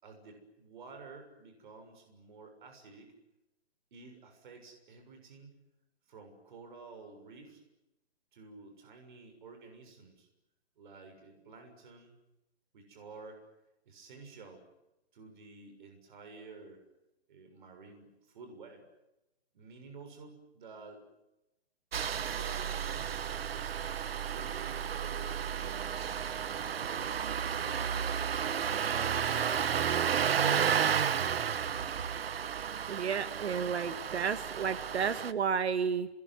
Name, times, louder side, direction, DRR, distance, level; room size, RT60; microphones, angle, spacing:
voice 1, 0.0-3.1 3.9-5.6 6.1-7.6 8.3-10.3 10.8-12.1 12.7-13.4 13.8-14.6 15.1-16.8 17.3-18.8 19.5-21.0 22.2-23.8 24.3-26.0 26.7-28.2, right 4 dB, 50° right, 4 dB, 6.8 m, -51 dB
Engine starting, 21.9-35.3, right 8 dB, 65° right, 1.4 m, -32 dB
voice 2, 32.9-36.1, right 6 dB, 80° right, 11 dB, 1.8 m, -32 dB
28.5 x 21.5 x 9.5 m, 0.92 s
hypercardioid pair, 165°, 32 cm